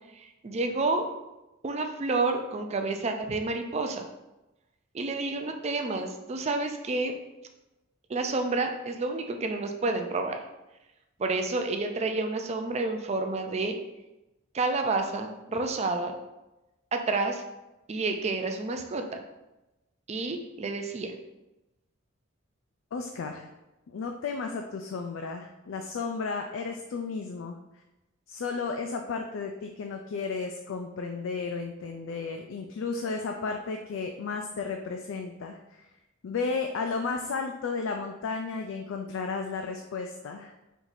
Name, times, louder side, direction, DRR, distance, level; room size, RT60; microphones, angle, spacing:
voice 1, 0.1-1.1 1.6-4.1 4.9-7.1 8.1-10.4 11.2-13.8 14.5-16.2 16.9-17.4 17.9-19.2 20.1-21.1, right 3 dB, 30° right, 5 dB, 0.4 m, -29 dB
voice 2, 22.9-23.5 23.9-27.8 28.3-35.8 36.2-40.5, left 4 dB, 70° left, 4 dB, 0.3 m, -33 dB
4.5 x 2.7 x 4.0 m, 1.0 s
head